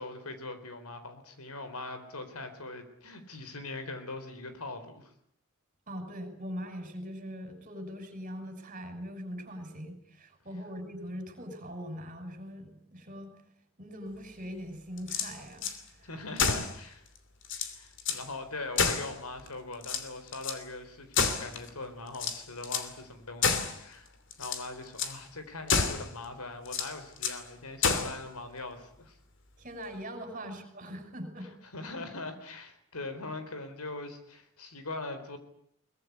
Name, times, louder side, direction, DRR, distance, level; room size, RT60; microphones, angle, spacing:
voice 1, 0.0-5.1 16.0-17.0 17.7-24.1 24.4-29.2 30.4-30.5 31.7-35.4, left 2 dB, 85° left, 10 dB, 4.1 m, -41 dB
voice 2, 5.9-13.3 13.8-16.1 29.6-31.5, equal, 35° right, 6 dB, 6.4 m, -41 dB
sound 1, 15.0-15.8 16.4-16.8 17.2-17.3 17.4-18.3 18.8-19.5 19.8-20.6 21.1-21.7 22.1-22.9 23.4-23.8 24.3-24.7 25.0-25.2 25.7-26.1 26.7-27.4 27.8-28.2, left 5 dB, 55° left, 2.8 m, -29 dB
22.5 x 20.5 x 9.7 m, 0.68 s
head